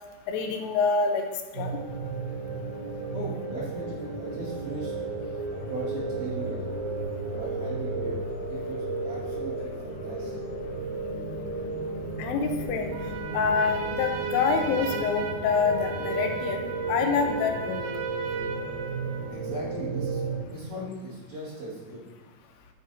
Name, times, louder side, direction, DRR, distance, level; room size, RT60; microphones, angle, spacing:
voice 1, 0.3-1.2 1.5-1.7 12.2-12.9 13.3-16.6 16.9-17.8, left 5 dB, 85° left, 4 dB, 3.2 m, -26 dB
sound 1, 1.5-20.4, right 3 dB, 65° right, 1.9 m, -33 dB
voice 2, 3.1-4.9 5.2-6.7 7.3-10.3 19.3-20.2 20.5-22.0, right 1 dB, 50° right, -8 dB, 2.8 m, -38 dB
Trumpet, 12.9-19.4, right 6 dB, 85° right, 3.2 m, -38 dB
10.5 x 5.1 x 2.8 m, 1.3 s
omnidirectional pair, 5.6 m